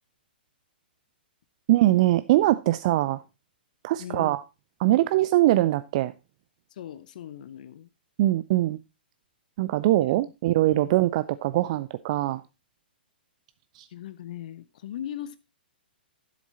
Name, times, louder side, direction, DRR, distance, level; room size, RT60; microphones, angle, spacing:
voice 1, 1.7-3.2 3.8-4.4 4.8-6.1 8.2-8.8 9.6-12.4 13.7-13.9, right 15 dB, 40° right, 0.4 m, -22 dB
voice 2, 4.0-4.3 6.7-7.9 10.7-10.9 13.9-15.4, left 11 dB, 50° left, 0.7 m, -39 dB
11.5 x 7.2 x 4.1 m
figure-of-eight pair, 115°, 5 cm